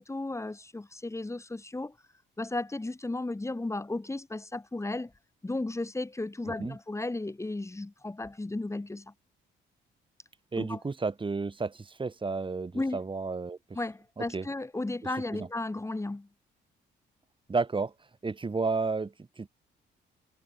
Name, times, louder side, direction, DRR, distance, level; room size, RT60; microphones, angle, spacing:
voice 1, 0.0-2.0 2.4-5.1 5.4-9.1 10.6-10.8 12.7-13.0 13.8-16.3, left 2 dB, 15° left, 2.0 m, -34 dB
voice 2, 10.5-13.6 14.2-14.5 15.3-15.5 17.5-17.9 18.2-19.5, right 4 dB, 25° right, 2.4 m, -32 dB
cardioid pair, 90°, 20 cm